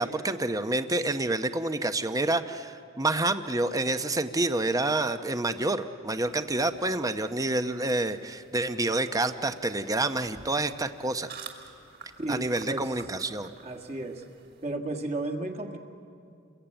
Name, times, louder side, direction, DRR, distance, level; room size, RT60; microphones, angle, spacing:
voice 1, 0.0-11.3 12.3-13.5, right 2 dB, 15° right, 10 dB, 0.8 m, -28 dB
sound 1, 6.1-14.7, right 5 dB, 55° right, 3.0 m, -51 dB
voice 2, 12.2-13.0 13.6-14.2 14.6-15.8, right 2 dB, 35° right, 3 dB, 1.8 m, -33 dB
29.0 x 22.0 x 9.0 m, 2.4 s
head